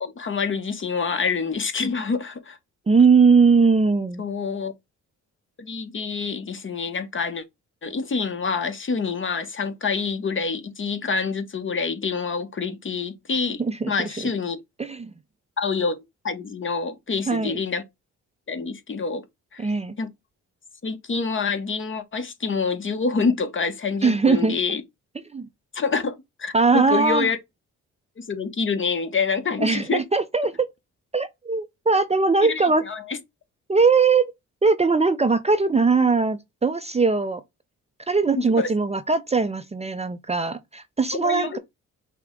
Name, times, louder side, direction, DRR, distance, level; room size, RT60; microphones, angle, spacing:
voice 1, 0.0-2.6 4.2-4.7 5.6-7.4 7.8-13.6 13.9-14.6 15.6-16.0 16.2-17.8 18.5-19.2 19.5-20.1 20.8-24.8 25.7-27.4 28.2-30.0 32.4-33.2 38.4-38.7 41.1-41.6, left 5 dB, 40° left, 1.0 m, -27 dB
voice 2, 2.9-4.2 13.6-13.9 14.8-15.1 17.3-17.6 19.6-20.0 24.0-24.5 25.3-25.5 26.5-27.3 29.6-30.7 31.1-32.8 33.7-34.3 34.6-37.4 38.1-41.6, right 4 dB, 20° right, 0.5 m, -20 dB
5.7 x 2.2 x 3.7 m
cardioid pair, 70°, 31 cm